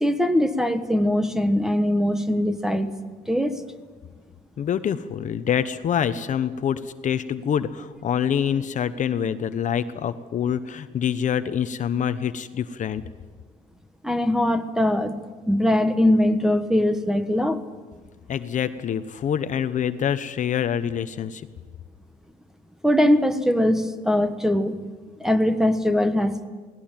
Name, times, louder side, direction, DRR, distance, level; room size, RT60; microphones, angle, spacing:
voice 1, 0.0-2.9 3.3-3.6 14.0-15.2 15.5-17.6 22.8-24.7 25.2-26.5, left 1 dB, 5° right, 10 dB, 1.3 m, -21 dB
voice 2, 4.6-13.0 18.3-21.5, left 8 dB, 45° left, 11 dB, 0.9 m, -26 dB
18.5 x 17.0 x 9.0 m, 1.4 s
cardioid pair, 110°, 17 cm